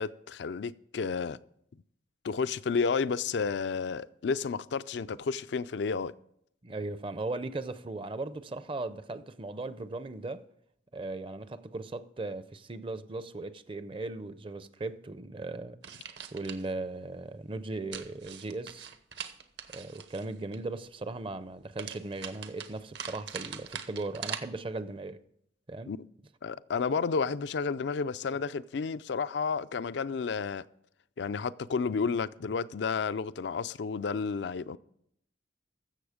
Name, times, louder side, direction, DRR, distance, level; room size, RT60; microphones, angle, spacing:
voice 1, 0.0-1.4 2.2-6.1 25.9-26.0 26.4-30.6 31.2-34.8, left 5 dB, 70° left, 0.4 m, -31 dB
voice 2, 6.6-10.4 10.9-15.8 16.1-18.9 19.7-25.2 25.7-25.9, right 2 dB, 30° right, 0.5 m, -38 dB
sound 1, 15.8-16.7 17.9-20.6 21.8-24.4, right 7 dB, 65° right, 1.0 m, -42 dB
15.0 x 6.9 x 5.0 m
head